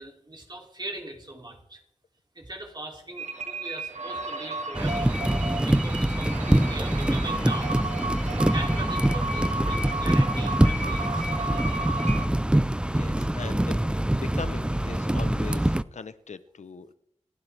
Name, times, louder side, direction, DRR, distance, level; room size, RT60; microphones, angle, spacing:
voice 1, 0.0-1.8 2.3-5.2 5.7-7.8 8.5-11.3, right 1 dB, 35° right, 1 dB, 2.9 m, -40 dB
sound 1, 3.2-12.3, right 2 dB, 80° right, 1.8 m, -33 dB
sound 2, 4.8-15.8, right 1 dB, 10° right, 0.5 m, -24 dB
voice 2, 12.9-16.9, left 5 dB, 90° left, 14 dB, 0.8 m, -40 dB
27.5 x 11.5 x 3.4 m, 0.72 s
wide cardioid pair, 80°, 12 cm